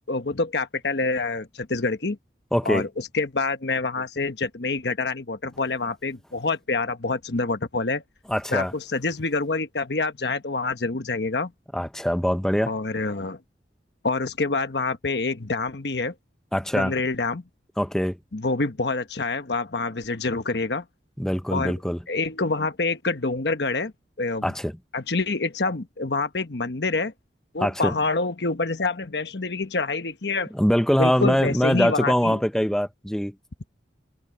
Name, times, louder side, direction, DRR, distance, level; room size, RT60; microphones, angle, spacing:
voice 1, 0.1-2.2 2.6-8.0 8.5-11.5 12.7-13.4 14.0-16.1 16.7-17.4 18.3-20.8 21.5-21.8 22.1-23.9 24.2-24.5 24.9-27.1 27.5-30.5 31.0-32.4, left 3 dB, 65° left, 1.2 m, -26 dB
voice 2, 2.5-2.9 8.3-8.7 11.7-12.7 16.5-16.9 17.8-18.2 21.2-22.0 24.4-24.7 27.6-27.9 30.5-33.3, equal, 5° left, 0.7 m, -23 dB
head